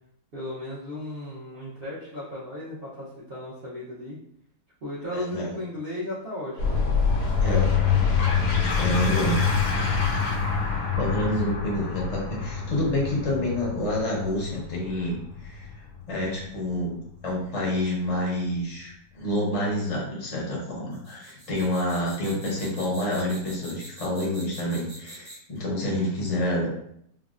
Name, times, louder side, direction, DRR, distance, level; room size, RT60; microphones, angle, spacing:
voice 1, 0.3-4.2 4.8-6.9, left 1 dB, 70° right, -9 dB, 0.5 m, -35 dB
voice 2, 5.1-5.5 7.4-7.7 8.5-9.4 11.0-17.0 17.2-26.7, left 1 dB, 45° left, -4 dB, 0.4 m, -28 dB
sound 1, 6.6-17.7, left 5 dB, 75° left, 1.2 m, -26 dB
sound 2, 20.9-25.6, right 1 dB, 40° right, 0.8 m, -44 dB
3.5 x 2.0 x 2.4 m, 0.72 s
omnidirectional pair, 1.9 m